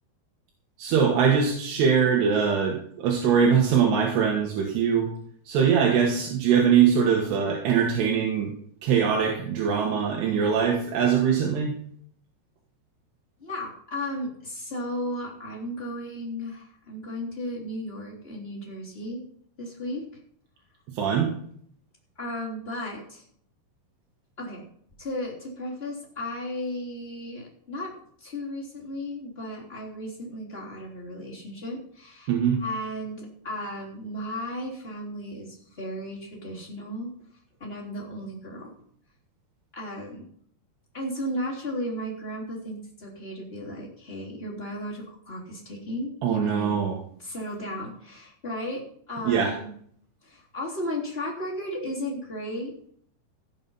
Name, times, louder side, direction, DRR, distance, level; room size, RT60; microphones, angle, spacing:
voice 1, 0.8-5.1 5.5-8.5 8.8-11.7 21.0-21.3 32.3-32.6 46.2-47.0 49.3-49.5, right 7 dB, 75° right, 0 dB, 3.6 m, -22 dB
voice 2, 13.4-19.2 19.6-20.1 22.2-23.3 24.4-24.7 25.0-27.9 28.2-32.3 32.6-37.1 37.6-38.7 39.7-40.2 40.9-46.8 47.2-49.7 50.2-52.9, left 1 dB, 15° left, -4 dB, 3.0 m, -35 dB
15.5 x 7.3 x 5.5 m, 0.63 s
omnidirectional pair, 4.8 m